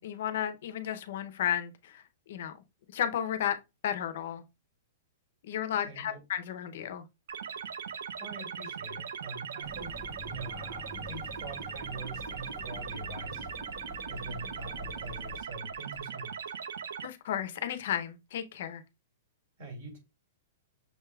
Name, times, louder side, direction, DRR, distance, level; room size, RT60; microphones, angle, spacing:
voice 1, 0.0-2.6 2.9-3.6 3.8-4.4 5.4-7.0 17.0-18.8, left 10 dB, 50° left, 0.6 m, -33 dB
voice 2, 5.8-6.2 8.2-13.5 14.1-16.4 19.6-20.0, right 2 dB, 50° right, 2.0 m, -44 dB
sound 1, 7.3-17.1, right 7 dB, 75° right, 0.4 m, -39 dB
sound 2, 9.6-15.4, left 3 dB, 5° left, 0.6 m, -47 dB
6.3 x 3.3 x 2.3 m
supercardioid pair, 175°, 0 cm